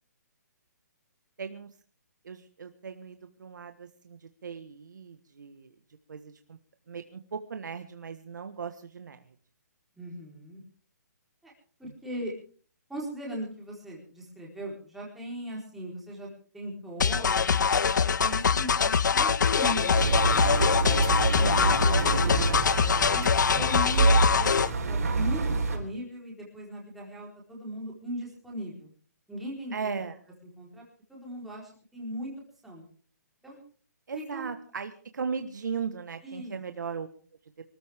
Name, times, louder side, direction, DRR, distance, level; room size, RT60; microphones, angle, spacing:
voice 1, 1.4-1.7 2.2-5.7 6.1-6.6 6.9-9.2 11.9-12.0 29.7-30.2 34.1-37.1, right 6 dB, 80° right, 8 dB, 1.5 m, -37 dB
voice 2, 10.0-10.6 11.4-11.5 11.8-12.3 12.9-16.3 16.5-17.9 18.2-20.5 21.0-24.5 24.9-28.9 29.3-30.0 30.6-30.8 31.1-32.3 32.6-32.8 33.4-33.6 34.1-34.5 36.2-36.6, equal, ahead, -4 dB, 4.2 m, -39 dB
sound 1, 17.0-24.7, left 6 dB, 85° left, 0.7 m, -24 dB
Engine, 19.9-25.8, right 3 dB, 55° right, 4.8 m, -26 dB
24.5 x 14.0 x 3.6 m, 0.41 s
hypercardioid pair, 175°, 10 cm